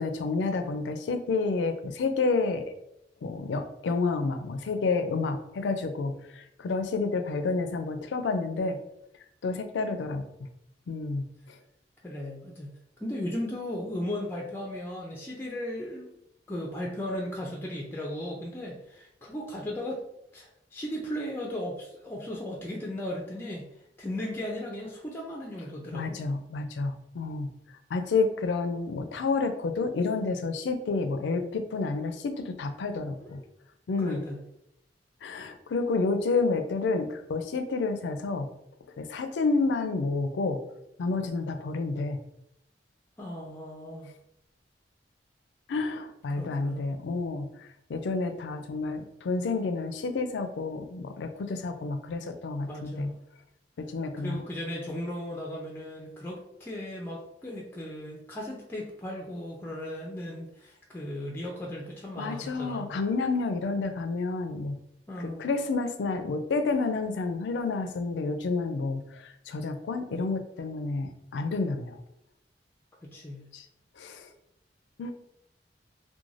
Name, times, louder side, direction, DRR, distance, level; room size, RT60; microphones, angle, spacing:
voice 1, 0.0-2.6 3.2-8.8 9.4-10.3 10.9-11.6 25.9-27.5 27.9-33.4 33.9-34.2 35.2-38.5 39.0-40.6 41.0-42.2 45.7-53.1 53.8-54.4 62.2-64.8 65.4-72.0 73.5-73.7 74.0-74.3 75.0-75.1, left 3 dB, 80° left, 8 dB, 0.4 m, -30 dB
voice 2, 12.0-12.7 13.0-16.1 16.5-20.0 20.3-23.7 24.0-26.2 33.2-33.4 34.0-34.4 43.2-44.1 46.3-46.9 52.7-53.2 54.2-63.0 65.1-65.5 73.0-73.5, left 1 dB, 15° left, -2 dB, 0.4 m, -36 dB
2.4 x 2.2 x 3.1 m, 0.81 s
head